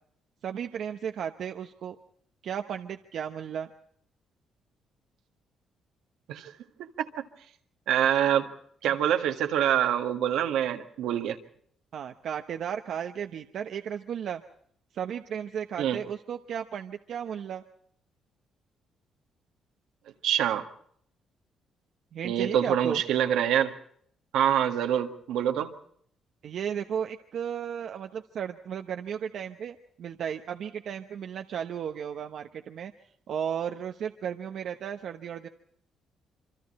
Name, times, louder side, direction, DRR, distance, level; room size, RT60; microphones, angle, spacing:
voice 1, 0.4-1.9 2.4-3.7 11.9-14.4 14.9-17.6 22.1-23.0 26.4-32.9 33.3-35.5, right 8 dB, 65° right, 6 dB, 1.0 m, -34 dB
voice 2, 7.9-8.5 8.8-11.4 15.8-16.0 20.2-20.7 22.2-23.8 24.3-25.7, right 10 dB, 85° right, 5 dB, 1.7 m, -25 dB
27.0 x 24.5 x 4.3 m, 0.64 s
cardioid pair, 90°, 0 cm